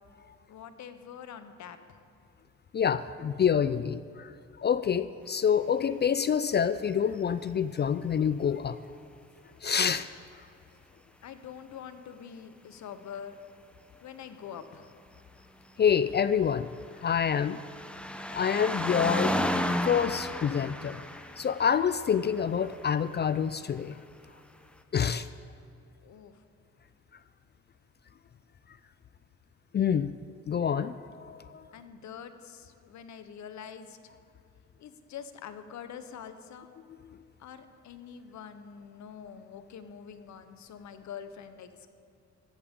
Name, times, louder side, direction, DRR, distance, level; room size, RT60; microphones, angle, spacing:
voice 1, 0.5-2.0 11.2-13.4 14.0-14.9 26.0-26.4 31.7-34.1 34.8-36.7 37.4-41.9, left 8 dB, 70° left, 10 dB, 1.0 m, -45 dB
voice 2, 2.7-4.3 4.6-8.8 9.6-10.1 15.8-16.7 17.0-17.6 18.3-19.4 19.8-21.0 21.4-24.0 24.9-25.3 29.7-30.1 30.5-31.7 37.0-37.2, left 7 dB, 35° left, 14 dB, 0.4 m, -27 dB
sound 1, 16.3-23.0 24.0-24.1, equal, 5° left, 0.8 m, -33 dB
17.0 x 13.5 x 3.7 m, 2.5 s
cardioid pair, 90°, 30 cm